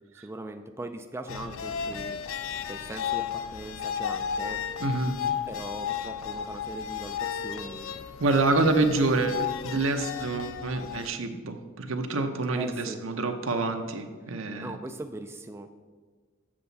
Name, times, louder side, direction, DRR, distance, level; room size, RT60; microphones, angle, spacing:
voice 1, 0.1-2.2 2.6-4.6 5.5-8.0 8.9-9.5 12.5-13.0 14.2-15.7, right 2 dB, 15° right, 6 dB, 0.3 m, -40 dB
sound 1, 1.3-11.1, left 8 dB, 70° left, 0.5 m, -34 dB
voice 2, 4.8-5.2 8.2-14.7, right 2 dB, 70° right, 6 dB, 0.8 m, -27 dB
7.6 x 6.9 x 4.0 m, 1.5 s
head